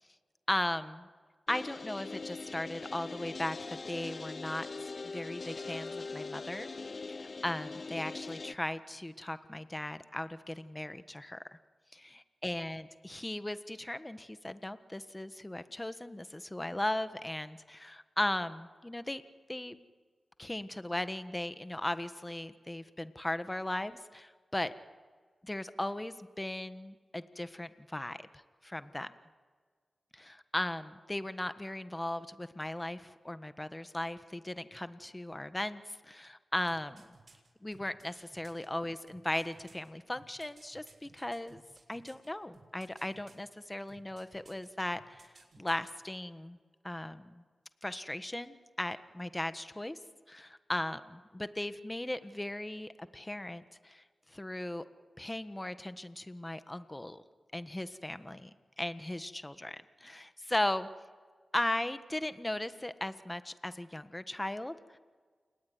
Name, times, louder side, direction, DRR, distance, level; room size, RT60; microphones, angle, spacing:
voice 1, 0.5-1.1 1.5-3.6 3.9-6.7 7.1-11.6 11.9-19.2 19.5-19.8 20.4-24.7 25.4-28.3 28.6-29.1 30.1-37.0 37.6-41.6 41.9-46.6 46.8-47.4 47.8-50.0 50.3-54.0 54.3-54.8 55.2-57.2 57.5-60.9 61.5-65.0, left 1 dB, 20° left, 11 dB, 1.5 m, -37 dB
sound 1, 1.5-8.5, left 4 dB, 55° left, 0.7 m, -42 dB
sound 2, 36.7-38.5 39.1-42.3 42.5-43.5 43.9-44.7 44.9-45.9 46.2-46.3, right 3 dB, 60° right, 7.0 m, -59 dB
29.5 x 20.0 x 9.7 m, 1.5 s
cardioid pair, 50°, 0 cm